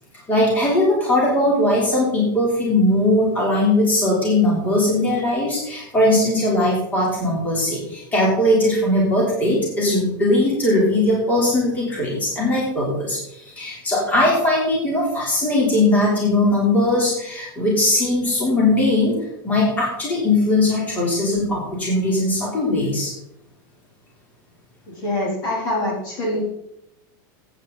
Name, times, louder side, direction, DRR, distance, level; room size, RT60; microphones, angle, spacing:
voice 1, 0.3-19.1 19.4-23.1, left 1 dB, 15° left, -4 dB, 3.4 m, -19 dB
voice 2, 24.9-26.4, left 1 dB, 30° left, -3 dB, 3.4 m, -25 dB
14.5 x 8.9 x 3.9 m, 0.81 s
supercardioid pair, 175°, 11 cm